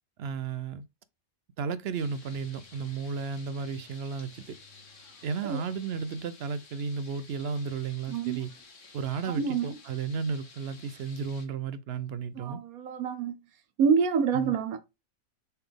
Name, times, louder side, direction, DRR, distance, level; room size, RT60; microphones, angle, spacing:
voice 1, 0.2-0.9 1.6-4.6 5.2-8.5 8.9-12.6 14.3-14.5, right 5 dB, 60° right, 0.7 m, -33 dB
sound 1, 1.9-11.5, left 4 dB, 60° left, 1.8 m, -53 dB
voice 2, 8.1-8.4 9.4-9.7 12.4-13.3 13.8-14.8, right 6 dB, 85° right, 1.3 m, -27 dB
6.8 x 4.0 x 3.5 m
omnidirectional pair, 1.5 m